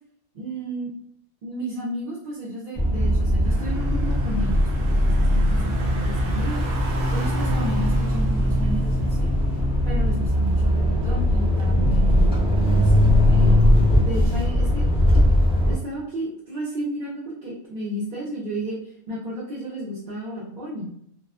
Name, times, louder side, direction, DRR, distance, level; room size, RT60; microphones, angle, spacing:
voice 1, 0.3-0.9 1.4-6.6 7.1-9.3 9.8-12.9 13.3-15.3 15.7-20.9, right 1 dB, 45° right, -9 dB, 0.7 m, -32 dB
sound 1, 2.8-15.7, left 1 dB, 5° right, 0.4 m, -20 dB
Car / Engine, 3.4-11.6, equal, 75° right, 1.0 m, -37 dB
2.4 x 2.3 x 2.4 m, 0.71 s
omnidirectional pair, 1.4 m